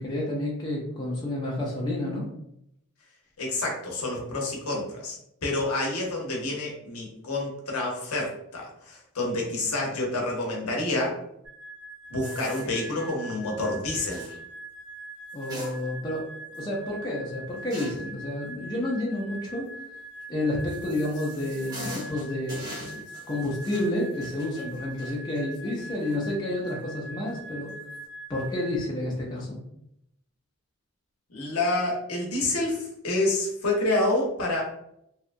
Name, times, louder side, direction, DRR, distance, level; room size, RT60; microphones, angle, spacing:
voice 1, 0.0-2.3 15.3-16.3 16.6-19.7 20.3-27.7 28.3-29.6, left 1 dB, 20° left, -4 dB, 0.5 m, -30 dB
voice 2, 3.4-11.2 12.1-14.2 31.3-34.6, left 2 dB, 75° left, -2 dB, 0.8 m, -28 dB
sound 1, 11.4-28.8, right 2 dB, 75° right, 1.1 m, -43 dB
sound 2, 12.2-13.1 14.1-14.4 15.3-16.2 16.5-16.6 17.7-18.1 20.2-26.3 26.7-26.8 27.7-28.0, equal, 15° right, 0.7 m, -43 dB
2.7 x 2.3 x 2.5 m, 0.78 s
head